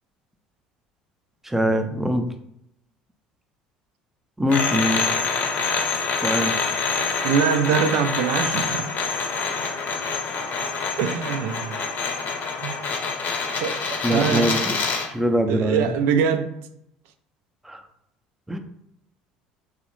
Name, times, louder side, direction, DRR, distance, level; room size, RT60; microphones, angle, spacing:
voice 1, 1.4-2.3 4.4-5.1 6.2-6.6 14.0-14.8 15.1-15.9 17.6-17.8 18.5-18.6, equal, 10° right, 0.5 m, -23 dB
sound 1, 4.5-15.1, left 5 dB, 50° left, 0.7 m, -26 dB
voice 2, 7.2-8.8 11.0-11.8 12.6-12.8 13.6-14.6 15.5-16.6, right 7 dB, 65° right, 0.3 m, -23 dB
3.7 x 2.1 x 3.0 m
hypercardioid pair, 65°, 4 cm